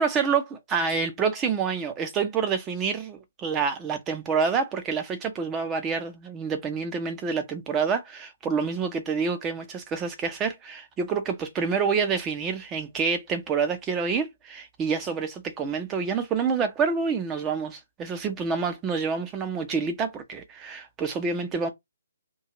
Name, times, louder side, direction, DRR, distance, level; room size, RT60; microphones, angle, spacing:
voice 1, 0.0-21.7, right 5 dB, 15° right, 0.6 m, -27 dB
2.4 x 2.2 x 2.9 m
figure-of-eight pair, 145°, 0 cm